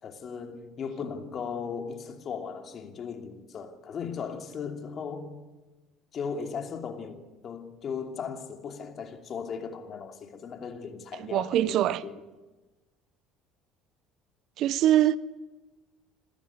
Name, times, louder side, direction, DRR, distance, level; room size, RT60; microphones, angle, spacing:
voice 1, 0.0-5.4 6.1-12.2, left 6 dB, 40° left, 2.8 m, -37 dB
voice 2, 11.1-12.0 14.6-15.2, right 12 dB, 55° right, 0.7 m, -23 dB
27.0 x 13.5 x 9.6 m
hypercardioid pair, 60°, 0 cm